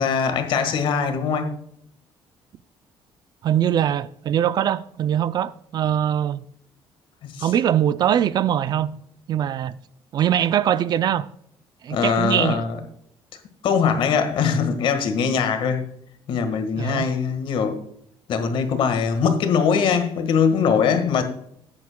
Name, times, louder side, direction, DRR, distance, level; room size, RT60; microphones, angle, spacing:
voice 1, 0.0-1.6 7.2-7.5 11.9-12.8 13.6-15.9 16.3-17.8 18.3-21.2, left 6 dB, 60° left, 1.6 m, -22 dB
voice 2, 3.4-6.5 7.4-9.0 9.3-9.8 10.1-11.3 11.8-12.6 16.8-17.1, right 10 dB, 45° right, 0.4 m, -22 dB
14.0 x 9.6 x 2.2 m
cardioid pair, 165°, 10 cm